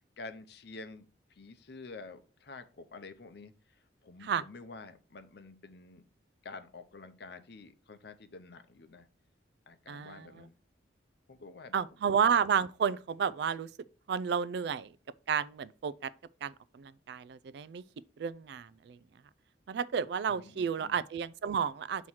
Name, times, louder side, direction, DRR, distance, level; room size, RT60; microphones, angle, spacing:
voice 1, 0.0-6.0 6.4-9.1 9.7-10.5 11.3-11.8 20.3-21.0, left 3 dB, 60° left, 0.7 m, -49 dB
voice 2, 9.9-10.2 11.7-13.7 14.1-14.9 15.3-16.1 16.4-16.5 16.8-17.8 18.2-19.0 19.7-22.1, right 7 dB, 60° right, 0.3 m, -31 dB
6.2 x 3.0 x 5.5 m
head